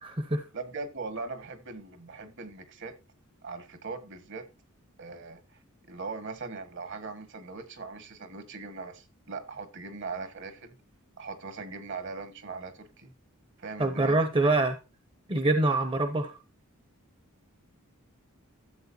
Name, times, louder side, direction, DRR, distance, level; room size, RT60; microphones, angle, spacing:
voice 1, 0.0-0.4 13.8-14.8 15.3-16.3, right 2 dB, 25° right, 8 dB, 0.9 m, -25 dB
voice 2, 0.5-2.9 3.4-4.5 5.0-5.6 5.9-10.8 11.2-13.1 13.6-14.3, right 4 dB, 55° right, 9 dB, 1.7 m, -40 dB
13.5 x 7.8 x 2.8 m, 0.28 s
head